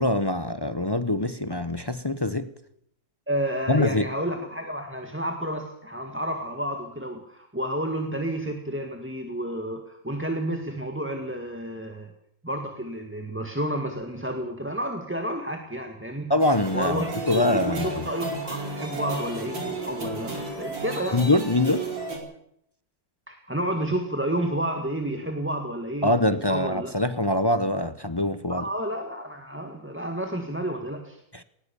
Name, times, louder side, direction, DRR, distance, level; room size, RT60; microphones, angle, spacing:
voice 1, 0.0-2.5 3.7-4.1 16.3-18.0 21.1-21.9 26.0-28.6 31.3-31.4, left 1 dB, 30° left, 0.4 m, -24 dB
voice 2, 3.3-12.1 12.4-16.3 16.7-21.2 23.3-26.9 28.5-31.2, right 1 dB, 5° right, 1.6 m, -30 dB
sound 1, 16.4-22.2, right 2 dB, 85° right, 5.5 m, -33 dB
19.5 x 19.0 x 7.0 m
omnidirectional pair, 2.0 m